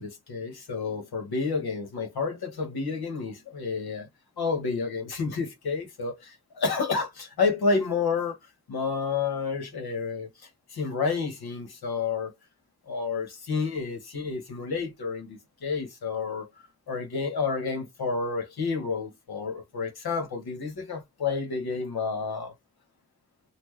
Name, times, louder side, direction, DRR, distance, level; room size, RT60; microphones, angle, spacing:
voice 1, 0.0-4.1 4.4-8.4 8.7-10.3 10.7-12.3 12.9-16.5 16.9-22.5, left 4 dB, 80° left, 1.6 m, -30 dB
4.3 x 2.6 x 3.3 m
cardioid pair, 85°, 37 cm